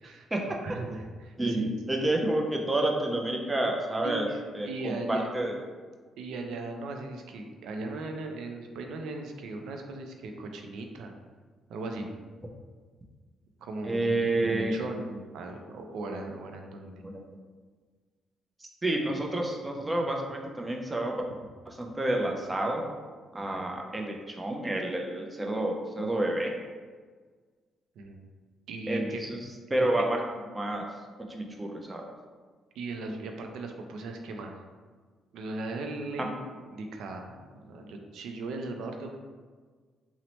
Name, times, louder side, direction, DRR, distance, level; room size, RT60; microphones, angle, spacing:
voice 1, 0.0-1.9 4.0-5.2 6.2-11.1 11.7-12.1 13.6-17.0 23.5-23.7 28.0-28.3 28.7-29.2 32.8-34.6 35.3-39.2, right 2 dB, 80° right, 4 dB, 0.3 m, -38 dB
voice 2, 1.4-4.3 4.5-5.5 13.8-14.7 17.0-17.2 18.8-21.2 21.7-22.8 23.3-26.5 28.9-29.4 29.7-30.2 30.5-30.9 31.3-32.0 36.2-36.3, right 1 dB, 20° right, 1 dB, 0.4 m, -29 dB
2.8 x 2.0 x 2.9 m, 1.5 s
cardioid pair, 90°, 0 cm